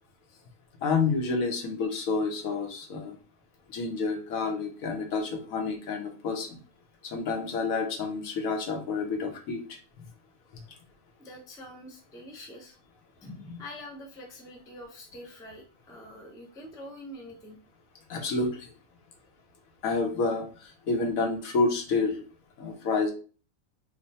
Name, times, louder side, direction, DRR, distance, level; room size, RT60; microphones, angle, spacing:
voice 1, 0.8-3.2 3.7-6.6 7.0-9.8 18.1-18.7 19.8-22.2 22.6-23.1, left 4 dB, 75° left, 3 dB, 1.2 m, -29 dB
voice 2, 11.2-12.8 13.2-17.6, left 1 dB, 5° left, -1 dB, 0.3 m, -45 dB
3.1 x 2.2 x 4.0 m, 0.37 s
omnidirectional pair, 1.5 m